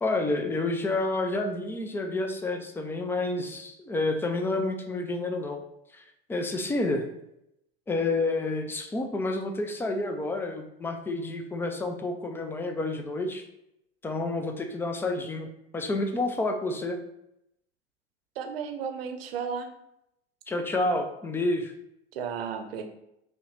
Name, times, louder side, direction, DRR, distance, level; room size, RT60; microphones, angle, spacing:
voice 1, 0.0-5.6 5.9-6.0 6.3-7.1 7.9-13.5 14.0-15.5 15.7-17.0 20.5-21.7, left 2 dB, 5° left, 5 dB, 0.3 m, -29 dB
voice 2, 18.4-19.7 22.1-22.8, right 6 dB, 65° right, 7 dB, 0.7 m, -33 dB
5.4 x 2.2 x 3.1 m, 0.82 s
figure-of-eight pair, 85°, 32 cm